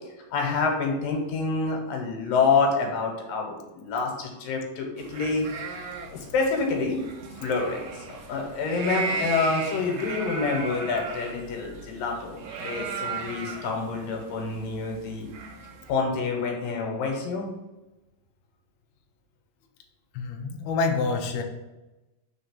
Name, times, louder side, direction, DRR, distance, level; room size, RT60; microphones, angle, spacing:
voice 1, 0.3-5.5 6.1-7.0 7.4-8.0 8.3-15.3 15.9-17.5, left 4 dB, 90° left, 1 dB, 2.9 m, -27 dB
sound 1, 5.0-15.9, right 4 dB, 75° right, 1.6 m, -36 dB
voice 2, 20.2-21.4, left 4 dB, 70° left, 3 dB, 1.8 m, -27 dB
5.1 x 3.9 x 5.8 m, 1.0 s
omnidirectional pair, 3.9 m